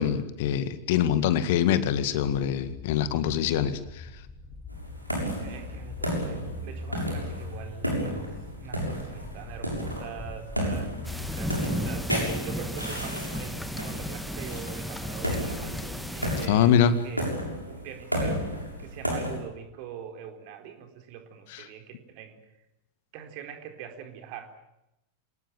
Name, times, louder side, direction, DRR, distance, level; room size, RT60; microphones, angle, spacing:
voice 1, 0.0-4.1 16.5-16.9 21.5-21.6, left 9 dB, 50° left, 12 dB, 1.9 m, -24 dB
sound 1, 2.1-11.6, left 3 dB, 15° left, 5.0 m, -41 dB
sound 2, 4.7-19.4, equal, 90° right, 7.0 m, -33 dB
voice 2, 5.4-8.3 8.6-12.1 12.5-17.3 17.7-22.4 23.1-24.6, right 8 dB, 45° right, 6 dB, 4.3 m, -43 dB
sound 3, 11.0-16.5, equal, ahead, 1.9 m, -34 dB
27.0 x 19.0 x 9.1 m, 0.88 s
figure-of-eight pair, 90°, 0 cm